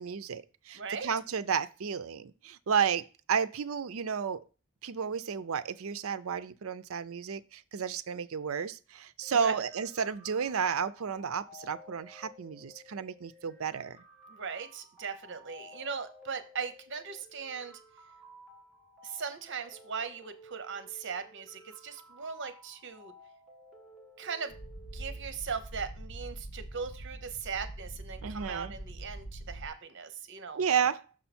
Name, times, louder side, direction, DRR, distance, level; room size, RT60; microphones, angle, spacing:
voice 1, 0.0-4.4 4.8-14.0 28.2-28.7 30.5-31.0, right 7 dB, 80° right, 0.5 m, -32 dB
voice 2, 0.7-1.1 9.3-9.5 14.3-17.8 19.0-23.1 24.2-24.6 24.9-30.6, right 6 dB, 60° right, 0.9 m, -39 dB
sound 1, 9.2-25.2, left 1 dB, 5° right, 2.0 m, -55 dB
sound 2, 24.5-29.7, right 1 dB, 75° left, 2.2 m, -43 dB
6.2 x 5.7 x 4.3 m
head